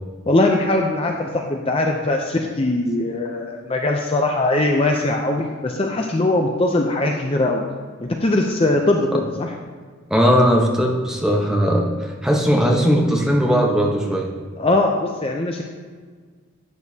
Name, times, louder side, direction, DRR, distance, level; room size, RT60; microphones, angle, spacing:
voice 1, 0.3-7.7 8.0-9.5 14.6-15.6, left 2 dB, 25° left, 2 dB, 0.5 m, -21 dB
voice 2, 10.1-14.3, equal, 5° right, -1 dB, 0.9 m, -18 dB
10.5 x 8.6 x 2.8 m, 1.5 s
head